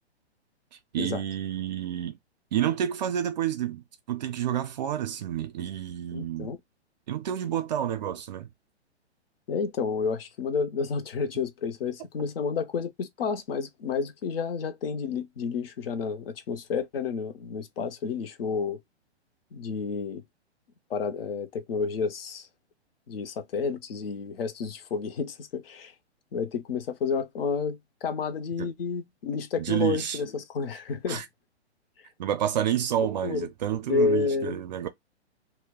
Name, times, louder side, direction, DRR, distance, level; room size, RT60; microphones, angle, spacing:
voice 1, 0.9-2.2 2.5-6.5 7.1-8.5 28.6-28.7 29.6-30.2 31.1-31.2 32.2-34.9, right 10 dB, 40° right, 0.5 m, -29 dB
voice 2, 6.1-6.6 9.5-18.8 19.5-20.2 20.9-22.5 23.1-25.9 26.3-31.2 33.2-33.5 33.9-34.6, left 5 dB, 55° left, 0.7 m, -30 dB
2.2 x 2.1 x 3.5 m
figure-of-eight pair, 120°, 34 cm